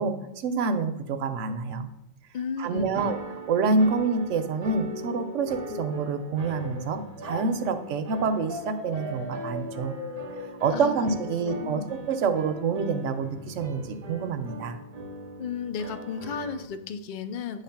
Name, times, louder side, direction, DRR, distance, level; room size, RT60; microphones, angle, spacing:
voice 1, 0.0-1.9 2.6-3.2 3.5-10.0 10.6-14.8, right 4 dB, 65° right, 8 dB, 1.0 m, -27 dB
voice 2, 2.3-3.1 10.7-11.1 11.4-12.0 15.4-17.6, left 6 dB, 65° left, 10 dB, 0.4 m, -34 dB
sound 1, 2.9-16.7, right 3 dB, 40° right, 0.6 m, -41 dB
sound 2, 4.6-7.5 8.5-11.5, left 2 dB, 15° left, 0.5 m, -39 dB
9.4 x 3.3 x 5.7 m, 0.87 s
omnidirectional pair, 1.4 m